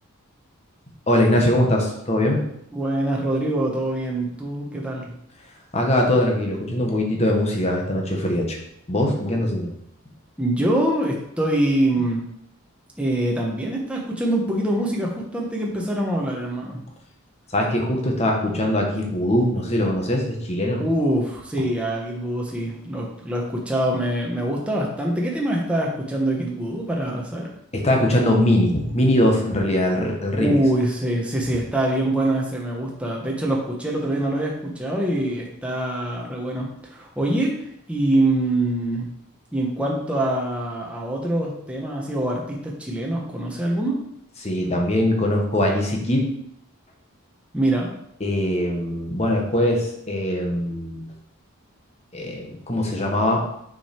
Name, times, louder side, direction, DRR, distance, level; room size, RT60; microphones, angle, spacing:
voice 1, 1.1-2.4 5.7-8.6 8.9-9.7 17.5-20.8 27.7-30.6 44.4-46.2 48.2-51.0 52.1-53.4, left 1 dB, 30° left, 1 dB, 1.2 m, -21 dB
voice 2, 2.7-5.1 10.4-12.2 13.0-16.8 20.8-27.5 30.3-37.5 37.9-39.1 39.5-44.0 47.5-47.9, right 1 dB, 5° right, -2 dB, 0.9 m, -24 dB
6.0 x 5.1 x 4.4 m, 0.75 s
head